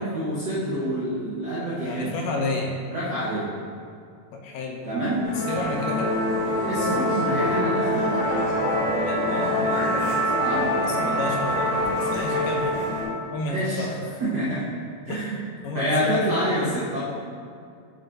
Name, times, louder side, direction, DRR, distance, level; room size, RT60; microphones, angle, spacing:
voice 1, 0.1-2.1 2.9-3.5 4.8-5.3 6.7-8.1 10.4-10.7 13.5-13.9 14.2-14.7 15.1-15.4 15.7-17.0, equal, 90° right, -8 dB, 0.9 m, -27 dB
voice 2, 1.8-2.8 4.3-6.2 9.0-10.1 10.8-12.8 13.3-14.0 15.1-15.3 15.6-16.2, left 2 dB, 75° left, 1 dB, 1.7 m, -31 dB
Musical instrument, 5.2-13.0, left 1 dB, 60° left, 1.6 m, -24 dB
7.1 x 3.8 x 3.9 m, 2.4 s
omnidirectional pair, 3.4 m